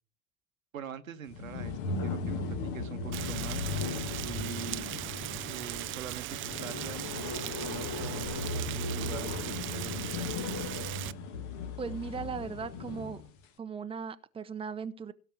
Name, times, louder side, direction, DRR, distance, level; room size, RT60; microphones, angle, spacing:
voice 1, 0.7-4.9 5.4-10.3, right 7 dB, 80° right, 1.2 m, -44 dB
sound 1, 1.3-13.3, left 4 dB, 45° left, 1.9 m, -37 dB
Rain, 3.1-11.1, right 16 dB, 30° right, 0.5 m, -39 dB
sound 2, 3.5-5.7 6.0-6.8 7.1-10.1 10.5-12.9, left 3 dB, 70° left, 2.1 m, -47 dB
voice 2, 11.8-13.2 13.6-15.1, right 6 dB, 15° right, 0.9 m, -38 dB
17.0 x 6.6 x 6.2 m
figure-of-eight pair, 75°, 41 cm